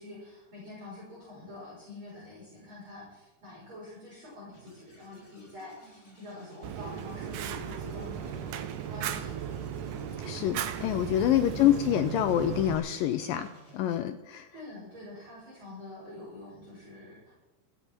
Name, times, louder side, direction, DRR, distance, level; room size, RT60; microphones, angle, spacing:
voice 1, 0.0-8.5 8.9-9.3 11.4-11.8 14.5-17.3, left 2 dB, 30° right, -7 dB, 5.8 m, -46 dB
sound 1, 4.5-13.8, left 1 dB, 5° left, 6.8 m, -54 dB
Fire, 6.6-12.8, right 9 dB, 75° right, 2.0 m, -36 dB
voice 2, 10.2-14.5, left 11 dB, 85° left, 9 dB, 2.0 m, -27 dB
26.5 x 9.5 x 4.5 m, 1.1 s
omnidirectional pair, 4.7 m